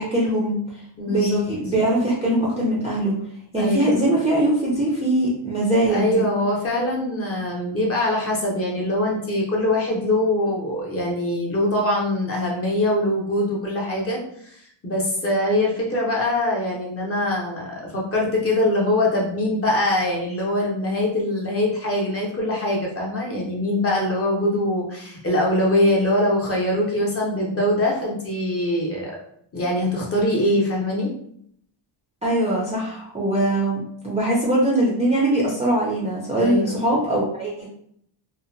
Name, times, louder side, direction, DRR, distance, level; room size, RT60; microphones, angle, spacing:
voice 1, 0.0-3.1 3.5-6.2 32.2-37.7, right 1 dB, 15° right, -5 dB, 0.3 m, -22 dB
voice 2, 1.0-1.4 3.6-4.0 5.9-14.2 14.5-29.2 29.5-31.1 36.4-36.8, left 1 dB, 30° left, -3 dB, 0.6 m, -23 dB
2.8 x 2.0 x 2.5 m, 0.68 s
cardioid pair, 150°, 50 cm